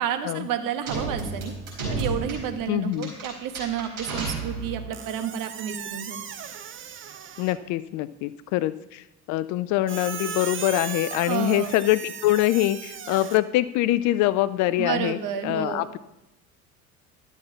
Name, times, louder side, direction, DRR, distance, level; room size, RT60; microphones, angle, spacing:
voice 1, 0.0-1.5 1.9-6.2 11.3-11.7 14.8-15.8, right 9 dB, 45° right, 8 dB, 1.3 m, -30 dB
sound 1, 0.9-5.0, right 3 dB, 70° right, 4.6 m, -32 dB
voice 2, 2.7-3.1 7.4-16.0, left 15 dB, 40° left, 15 dB, 0.4 m, -24 dB
Squeak, 4.9-7.7 9.9-13.4, right 8 dB, 25° right, 0.8 m, -37 dB
12.0 x 7.1 x 5.5 m, 0.89 s
figure-of-eight pair, 65°, 45 cm